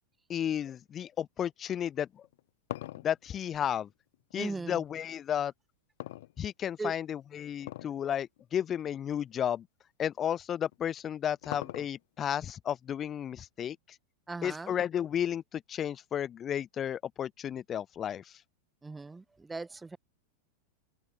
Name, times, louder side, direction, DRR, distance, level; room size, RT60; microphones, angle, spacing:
voice 1, 0.3-2.2 3.0-3.9 4.3-5.5 6.4-9.7 10.0-13.8 14.4-18.2, left 9 dB, 25° left, 1.3 m, -33 dB
sound 1, 2.2-4.6 6.0-6.9 7.6-8.0 8.4-8.5 9.2-9.3 10.7-12.2, left 16 dB, 55° left, 4.7 m, -42 dB
voice 2, 4.4-4.8 6.8-6.9 14.3-14.7 18.8-20.0, right 3 dB, 10° right, 0.8 m, -38 dB
figure-of-eight pair, 90°, 0 cm